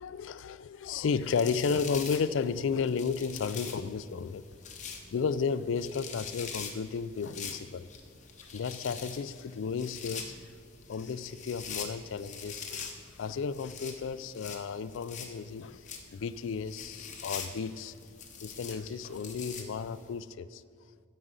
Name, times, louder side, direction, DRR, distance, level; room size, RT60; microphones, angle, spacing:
voice 1, 0.0-4.4 5.1-7.9 8.5-10.3 10.9-15.8 16.1-17.9 18.4-20.6, left 5 dB, 70° left, 15 dB, 0.4 m, -33 dB
sound 1, 0.9-20.1, left 6 dB, 35° left, 0.9 m, -44 dB
9.7 x 5.1 x 8.1 m, 2.2 s
head